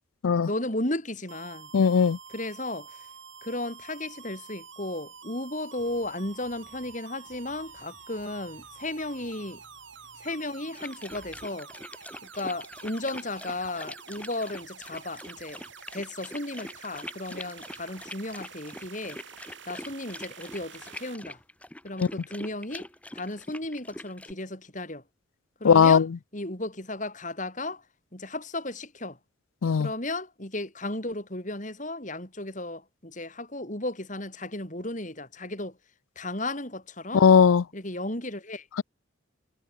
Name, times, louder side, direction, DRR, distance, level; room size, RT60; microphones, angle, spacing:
voice 1, 0.5-1.7 2.3-3.1 3.4-9.6 10.2-11.7 12.2-15.6 15.9-19.2 19.7-21.4 21.8-22.9 23.1-25.0 25.6-26.0 26.3-27.8 28.1-29.2 29.8-35.8 36.1-37.3 37.7-38.7, left 2 dB, 40° left, 4.8 m, -34 dB
sound 1, 1.3-21.1, right 6 dB, 65° right, 2.4 m, -48 dB
voice 2, 1.7-2.2 25.6-26.1 29.6-29.9 37.1-37.6, left 6 dB, 90° left, 0.5 m, -18 dB
sound 2, 5.8-11.5, right 1 dB, 10° right, 7.3 m, -59 dB
sound 3, 10.7-24.3, left 1 dB, 5° left, 2.4 m, -43 dB
head